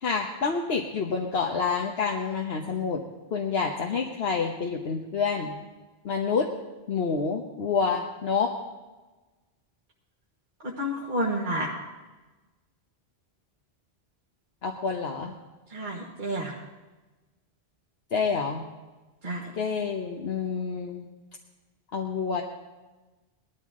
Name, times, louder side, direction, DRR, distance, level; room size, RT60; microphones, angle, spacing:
voice 1, 0.0-3.0 3.3-5.5 6.0-6.5 6.9-8.6 14.6-15.4 18.1-18.6 19.6-21.1 21.9-22.4, left 5 dB, 80° left, 1 dB, 1.3 m, -28 dB
voice 2, 10.8-11.7 15.7-16.5 19.2-19.4, equal, 50° right, -3 dB, 1.7 m, -29 dB
19.5 x 13.0 x 3.7 m, 1.2 s
omnidirectional pair, 1.0 m